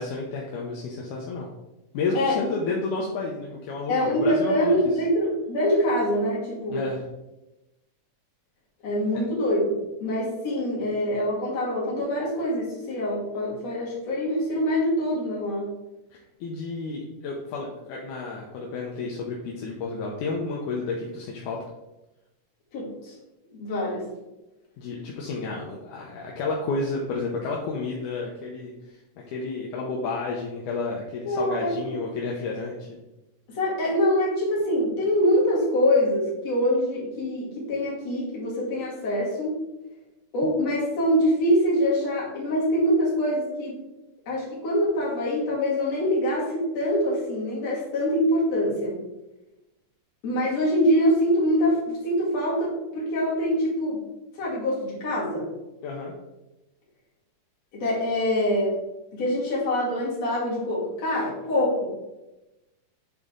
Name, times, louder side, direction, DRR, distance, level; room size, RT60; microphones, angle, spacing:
voice 1, 0.0-1.5 1.9-4.7 6.7-7.0 16.1-21.6 24.8-33.0 55.8-56.1, left 3 dB, 80° left, -2 dB, 2.2 m, -31 dB
voice 2, 3.9-6.8 8.8-15.7 22.7-23.1 23.5-24.0 31.2-31.8 33.5-39.5 40.3-43.8 44.3-49.0 50.2-54.0 54.4-55.5 57.7-58.8 59.1-61.9, equal, 55° left, -6 dB, 3.2 m, -24 dB
8.7 x 4.0 x 3.7 m, 0.98 s
omnidirectional pair, 3.6 m